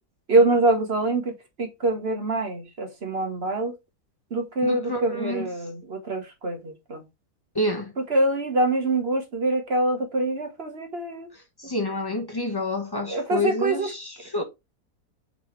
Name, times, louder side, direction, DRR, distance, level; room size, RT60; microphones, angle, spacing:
voice 1, 0.3-3.7 4.3-7.0 8.1-11.3 13.1-13.9, right 2 dB, 40° right, 1.3 m, -25 dB
voice 2, 4.6-5.5 7.5-7.9 11.3-14.4, left 1 dB, 15° left, 1.1 m, -28 dB
8.2 x 3.9 x 3.2 m
omnidirectional pair, 1.7 m